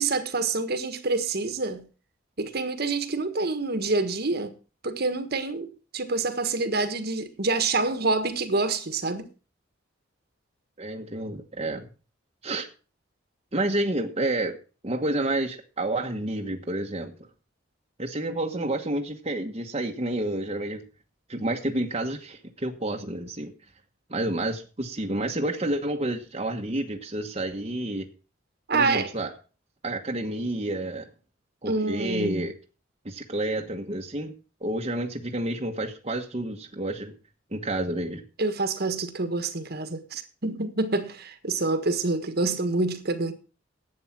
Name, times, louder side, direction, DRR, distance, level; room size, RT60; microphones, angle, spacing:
voice 1, 0.0-1.8 2.4-4.5 4.8-5.7 5.9-9.3 28.7-29.1 31.7-32.5 38.4-43.3, right 3 dB, 55° right, 1.5 m, -27 dB
voice 2, 10.8-11.9 12.4-12.7 13.5-14.6 14.8-17.1 18.0-20.9 21.3-23.5 24.1-28.1 28.7-29.3 29.8-31.1 31.6-32.5 33.0-34.3 34.6-37.1 37.5-38.2, right 1 dB, 30° right, 1.2 m, -29 dB
11.5 x 8.5 x 5.9 m
head